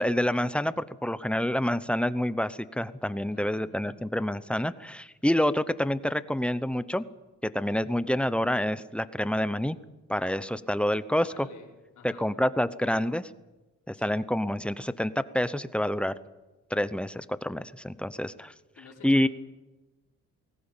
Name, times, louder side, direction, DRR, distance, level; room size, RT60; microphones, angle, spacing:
voice 1, 0.0-7.0 7.4-9.8 10.1-11.3 12.0-13.3 13.9-16.1 16.7-18.5 19.0-19.3, left 1 dB, 5° left, 14 dB, 0.8 m, -27 dB
voice 2, 3.3-4.0 11.2-12.3 13.9-14.2 18.8-19.3, left 5 dB, 75° left, -1 dB, 5.3 m, -51 dB
21.0 x 17.5 x 9.0 m, 1.1 s
cardioid pair, 115°, 30 cm